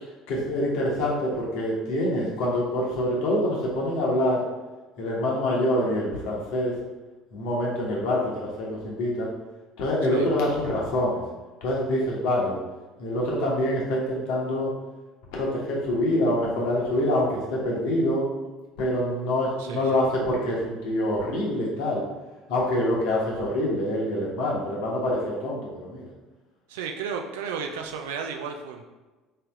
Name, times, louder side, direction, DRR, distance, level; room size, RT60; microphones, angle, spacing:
voice 1, 0.3-4.4 5.0-6.7 7.3-9.3 9.8-11.2 11.6-12.5 13.0-14.7 15.3-18.3 18.8-22.0 22.5-26.1, left 1 dB, 65° left, -3 dB, 1.1 m, -25 dB
voice 2, 19.6-20.0 26.7-28.8, right 6 dB, 75° right, 4 dB, 0.4 m, -33 dB
3.3 x 2.9 x 3.5 m, 1.2 s
figure-of-eight pair, 60°, 0 cm